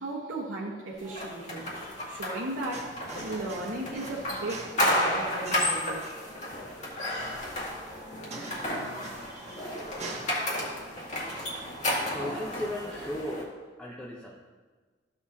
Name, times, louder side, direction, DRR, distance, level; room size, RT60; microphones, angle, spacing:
voice 1, 0.0-6.1 9.2-9.8 10.1-10.5, right 2 dB, 90° right, -5 dB, 1.3 m, -36 dB
sound 1, 0.9-12.4, right 2 dB, 35° right, 1.3 m, -46 dB
sound 2, 1.2-13.4, left 1 dB, 40° left, 1.9 m, -32 dB
voice 2, 12.1-13.5 13.8-14.5, left 1 dB, 5° left, -5 dB, 0.8 m, -36 dB
14.0 x 6.7 x 2.8 m, 1.4 s
head